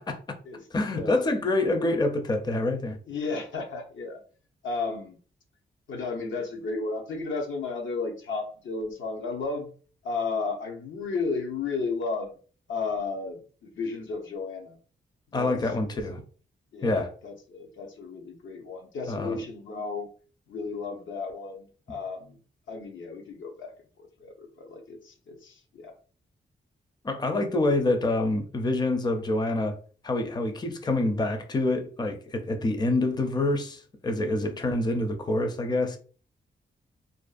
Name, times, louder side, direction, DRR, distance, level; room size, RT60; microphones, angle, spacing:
voice 1, 0.0-0.4 0.7-3.0 15.3-16.2 16.8-17.1 19.1-19.4 27.0-29.8 30.0-36.0, left 2 dB, 20° left, 0.5 m, -26 dB
voice 2, 3.1-4.2 4.6-5.2 5.9-9.7 10.0-12.4 12.7-14.8 15.3-15.5 16.7-20.1 20.5-22.4 22.7-25.9, left 4 dB, 75° left, 0.7 m, -33 dB
2.5 x 2.3 x 2.4 m
cardioid pair, 65°, 20 cm